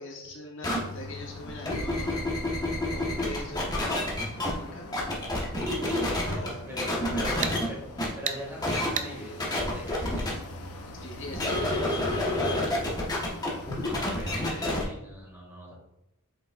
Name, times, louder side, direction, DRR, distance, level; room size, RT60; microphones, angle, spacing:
voice 1, 0.0-2.4 2.9-4.9 5.6-7.5 11.0-13.0, left 2 dB, 60° left, 0 dB, 1.2 m, -40 dB
sound 1, 0.6-0.8 1.5-4.5 4.9-6.5 6.8-7.6 8.0-8.1 8.6-8.9 9.4-10.3 11.3-14.8, left 1 dB, 20° left, 1.2 m, -28 dB
sound 2, 0.7-14.8, left 2 dB, 85° left, 0.9 m, -44 dB
voice 2, 6.7-7.8 8.1-10.3 13.8-15.7, equal, 10° right, -4 dB, 2.0 m, -41 dB
sound 3, 7.4-7.6 8.3-8.4 9.0-9.1, right 7 dB, 35° right, 0.4 m, -31 dB
7.5 x 5.2 x 2.5 m, 0.86 s
head